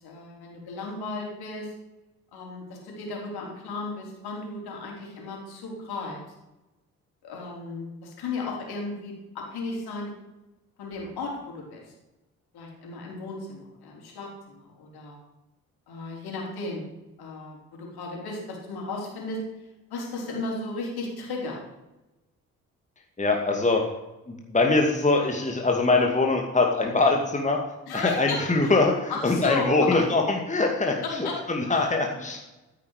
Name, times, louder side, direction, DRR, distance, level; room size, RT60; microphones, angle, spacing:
voice 1, 0.0-1.7 2.3-6.2 7.2-10.1 10.8-11.8 12.5-15.2 15.9-16.8 17.2-19.4 19.9-21.6 27.9-28.8 29.1-30.1 31.0-31.4 31.7-32.0, left 3 dB, 60° left, -1 dB, 4.8 m, -35 dB
voice 2, 23.2-23.8 24.3-27.6 27.9-32.4, left 3 dB, 15° left, 1 dB, 2.3 m, -23 dB
14.0 x 9.8 x 5.0 m, 1.0 s
figure-of-eight pair, 45°, 42 cm